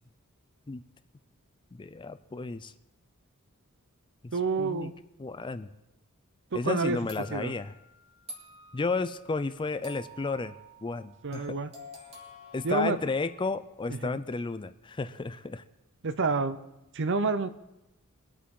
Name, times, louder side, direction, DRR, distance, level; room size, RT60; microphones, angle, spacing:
voice 1, 1.7-2.7 4.2-4.3 4.6-4.9 5.2-5.7 6.5-7.7 8.7-10.6 10.8-11.6 12.5-15.6, left 3 dB, 20° left, 13 dB, 0.4 m, -32 dB
voice 2, 4.3-4.9 6.5-7.0 7.3-7.5 11.2-11.7 12.6-13.0 14.0-14.1 16.0-16.6 16.9-17.5, right 3 dB, 55° right, 12 dB, 0.7 m, -28 dB
sound 1, 7.1-13.8, equal, 30° right, 2.9 m, -50 dB
23.5 x 8.3 x 3.8 m, 0.94 s
head